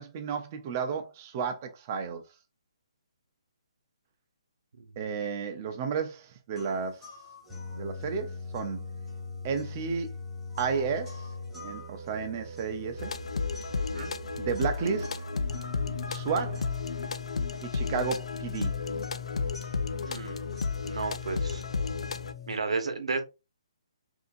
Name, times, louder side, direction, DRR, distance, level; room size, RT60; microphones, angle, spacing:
voice 1, 0.0-2.2 5.0-7.1 7.7-8.8 9.4-10.1 10.6-11.2 11.6-13.1 14.4-15.1 16.1-16.7 17.6-18.7, right 6 dB, 25° right, 0.6 m, -32 dB
sound 1, 6.6-22.6, left 4 dB, 5° left, 1.6 m, -42 dB
sound 2, 13.0-22.3, left 4 dB, 80° left, 0.5 m, -33 dB
voice 2, 13.7-14.2 20.0-20.4 20.8-21.6 22.5-23.2, right 4 dB, 75° right, 1.2 m, -33 dB
5.2 x 2.8 x 2.6 m
hypercardioid pair, 170°, 3 cm